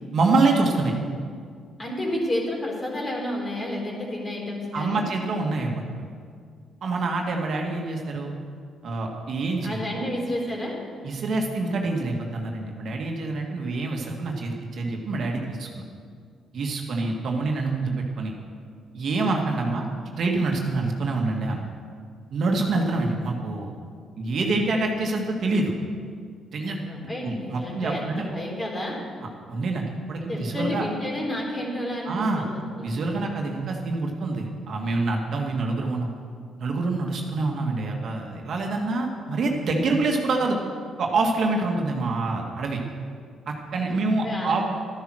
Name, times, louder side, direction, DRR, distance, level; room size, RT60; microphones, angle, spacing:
voice 1, 0.1-0.9 4.7-5.7 6.0-6.1 6.8-8.3 8.8-10.1 11.0-15.7 16.5-18.3 18.9-19.8 20.2-21.6 22.3-23.7 24.2-25.7 26.5-26.8 27.2-28.3 29.5-30.8 32.1-32.4 32.8-36.1 36.6-40.6 41.0-42.8 43.5-44.6, right 3 dB, 60° right, 1 dB, 1.8 m, -26 dB
voice 2, 1.8-5.0 9.6-10.8 26.6-29.0 30.3-32.9 43.8-44.5, left 1 dB, 30° left, -2 dB, 4.0 m, -31 dB
12.5 x 10.5 x 6.3 m, 2.1 s
cardioid pair, 90°, 0 cm